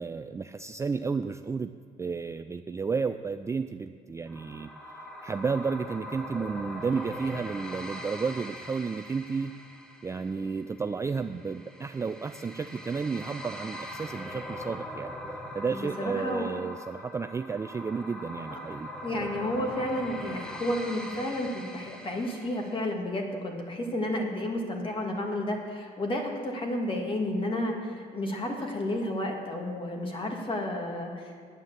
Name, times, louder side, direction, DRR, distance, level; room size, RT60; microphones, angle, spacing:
voice 1, 0.0-1.7 2.0-4.7 5.2-9.5 10.0-15.2 15.5-18.9, right 5 dB, 15° right, 7 dB, 0.3 m, -32 dB
sound 1, 4.3-22.9, equal, 5° left, 1.1 m, -42 dB
voice 2, 15.7-16.5 18.5-18.6 19.0-31.3, left 1 dB, 30° left, 2 dB, 2.0 m, -31 dB
9.6 x 9.0 x 7.4 m, 2.1 s
cardioid pair, 110°, 17 cm